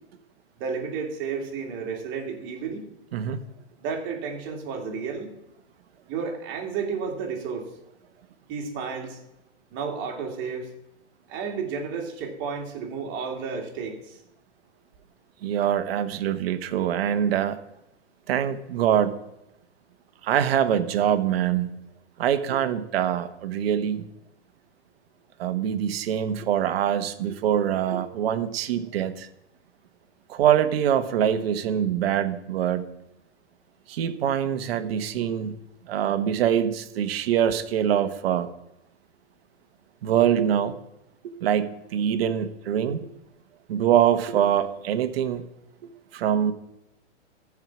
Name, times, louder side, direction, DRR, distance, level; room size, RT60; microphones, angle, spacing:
voice 1, 0.6-2.9 3.8-5.3 6.1-7.7 8.5-9.2 9.7-10.7 11.3-14.2, right 5 dB, 35° right, 1 dB, 2.6 m, -32 dB
voice 2, 15.4-17.6 18.3-19.2 20.2-21.7 22.2-24.0 25.4-29.3 30.3-32.8 33.9-35.5 35.9-38.5 40.0-40.7 41.2-43.1 43.7-45.4 46.1-46.5, right 9 dB, 55° right, 10 dB, 1.2 m, -24 dB
14.5 x 4.8 x 6.0 m, 0.87 s
hypercardioid pair, 135°, 35 cm